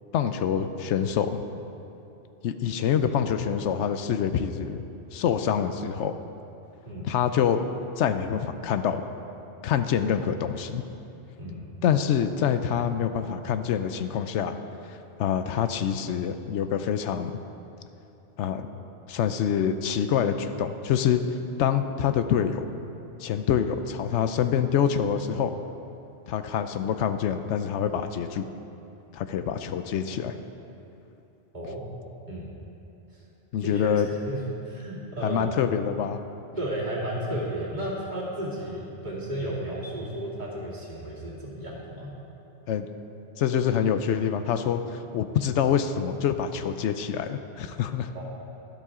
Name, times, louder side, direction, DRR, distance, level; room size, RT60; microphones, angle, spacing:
voice 1, 0.1-1.4 2.4-4.8 5.1-6.2 7.0-7.6 8.0-9.0 9.6-10.8 11.8-14.6 14.9-17.3 18.4-18.7 19.1-22.7 23.2-25.5 26.3-28.4 29.1-30.4 33.5-34.1 35.2-36.2 42.7-42.9 43.4-48.1, left 8 dB, 85° left, 9 dB, 0.9 m, -26 dB
voice 2, 6.9-7.2 11.4-11.7 31.5-31.9 32.3-32.5 33.1-33.2 33.6-33.9 34.2-35.5 36.6-42.1 48.1-48.2, right 1 dB, 40° right, -6 dB, 2.4 m, -33 dB
12.5 x 12.0 x 3.7 m, 2.9 s
omnidirectional pair, 1.2 m